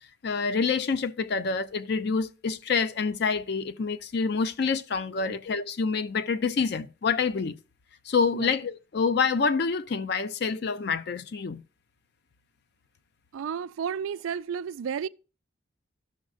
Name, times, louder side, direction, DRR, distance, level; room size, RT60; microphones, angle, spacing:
voice 1, 0.2-7.5 8.1-11.6, left 5 dB, 55° left, 0.4 m, -27 dB
voice 2, 13.3-15.1, right 7 dB, 85° right, 0.3 m, -32 dB
14.0 x 6.2 x 2.4 m
head